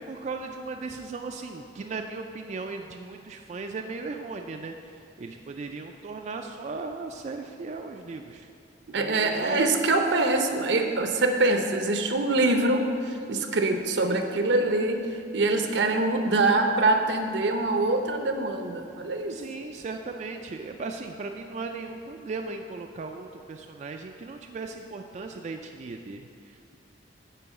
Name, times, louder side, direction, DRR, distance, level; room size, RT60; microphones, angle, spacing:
voice 1, 0.0-8.5 8.9-9.7 19.3-26.8, right 3 dB, 40° right, 4 dB, 0.3 m, -37 dB
voice 2, 8.9-19.4, right 2 dB, 75° right, 5 dB, 0.7 m, -24 dB
10.0 x 3.8 x 7.0 m, 2.5 s
head